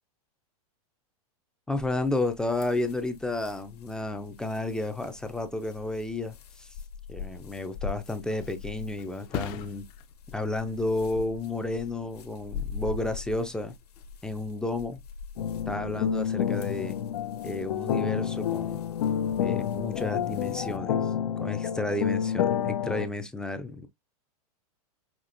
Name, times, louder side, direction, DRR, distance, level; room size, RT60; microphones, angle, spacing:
voice 1, 1.7-6.7 7.1-9.9 10.3-13.7 14.2-15.0 15.7-17.0 17.4-18.8 19.4-21.1 21.4-23.9, left 2 dB, 5° left, 0.5 m, -32 dB
sound 1, 1.8-20.8, left 6 dB, 85° left, 1.4 m, -43 dB
Thump thud, 7.7-15.2 15.6-16.0, left 9 dB, 40° left, 0.7 m, -44 dB
sound 2, 15.4-23.1, left 9 dB, 70° left, 0.7 m, -29 dB
5.8 x 2.9 x 2.6 m
hypercardioid pair, 145°, 20 cm